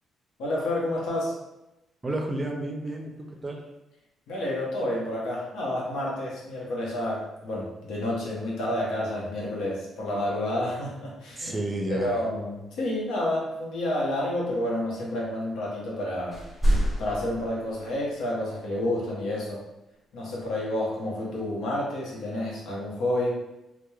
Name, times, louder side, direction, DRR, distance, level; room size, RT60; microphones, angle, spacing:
voice 1, 0.4-1.3 4.3-11.5 11.9-16.4 17.0-19.6 20.1-23.4, left 1 dB, 85° left, -4 dB, 0.8 m, -29 dB
voice 2, 2.0-3.6 11.4-12.2, right 1 dB, 20° right, 1 dB, 0.4 m, -31 dB
sound 1, 16.3-17.9 20.4-20.5, right 1 dB, 15° left, 1.4 m, -26 dB
2.9 x 2.1 x 2.3 m, 0.96 s
cardioid pair, 90°, 0 cm